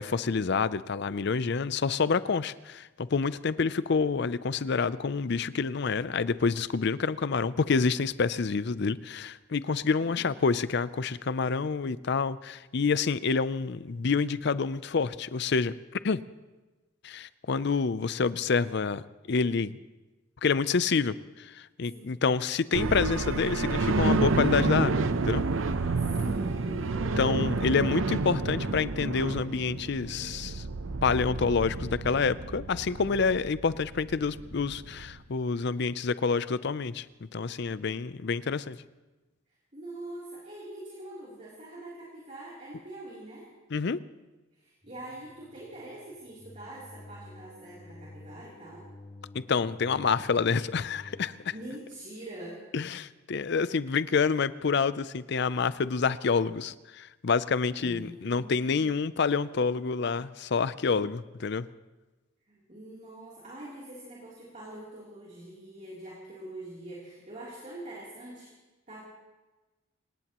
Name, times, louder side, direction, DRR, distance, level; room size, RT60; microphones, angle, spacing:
voice 1, 0.0-15.7 16.0-16.2 17.0-19.0 19.3-19.8 20.4-25.4 27.2-30.6 31.0-37.0 37.3-38.8 43.7-44.0 49.3-51.3 52.7-61.7, left 5 dB, 60° left, 15 dB, 0.5 m, -28 dB
voice 2, 10.0-10.4 21.9-22.2 26.0-27.3 39.7-43.5 44.5-48.9 51.5-52.6 57.8-58.9 62.5-68.5 68.9-69.0, right 1 dB, 35° right, -6 dB, 3.3 m, -44 dB
sound 1, 22.7-35.2, right 3 dB, 80° right, 0.7 m, -30 dB
sound 2, 44.8-51.5, left 2 dB, 20° left, 3.2 m, -50 dB
26.5 x 18.0 x 3.0 m, 1.2 s
head